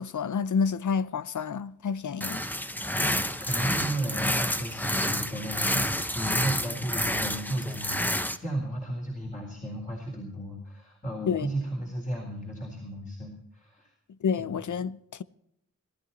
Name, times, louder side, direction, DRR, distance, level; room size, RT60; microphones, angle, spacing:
voice 1, 0.0-2.4 11.3-11.5 14.2-15.2, left 6 dB, 80° left, 0.7 m, -29 dB
sound 1, 2.2-8.4, equal, 5° left, 1.0 m, -29 dB
voice 2, 2.9-13.9 14.4-14.5, right 1 dB, 25° left, 4.0 m, -34 dB
20.0 x 12.5 x 4.2 m
wide cardioid pair, 75°, 30 cm